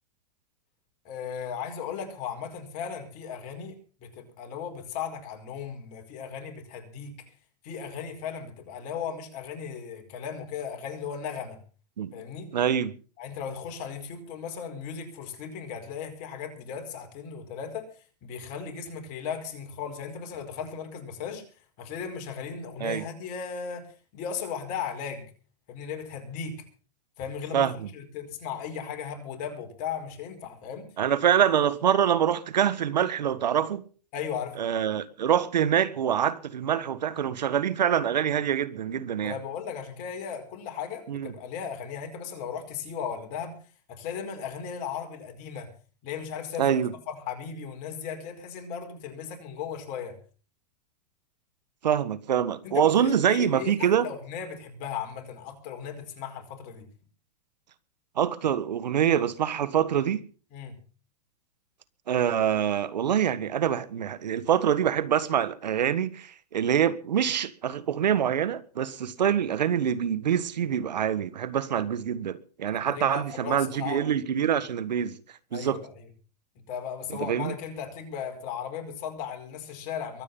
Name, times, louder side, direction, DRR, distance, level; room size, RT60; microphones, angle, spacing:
voice 1, 1.0-3.7 4.0-7.2 7.6-11.6 12.1-12.5 13.2-17.9 18.2-21.4 21.8-23.9 24.1-25.2 25.7-26.6 27.2-27.7 27.9-30.8 34.1-34.6 39.2-43.6 43.9-45.7 46.0-50.2 52.6-56.8 60.5-60.8 72.7-74.1 75.5-75.9 76.7-80.2, left 7 dB, 40° left, 5.0 m, -36 dB
voice 2, 12.5-12.9 22.8-23.0 27.5-27.9 31.0-33.8 34.6-39.4 41.1-41.3 46.6-46.9 51.8-54.1 58.2-60.2 62.1-75.2 75.5-75.8 77.1-77.5, right 9 dB, 90° right, 1.6 m, -25 dB
23.0 x 8.7 x 5.5 m
hypercardioid pair, 135°, 21 cm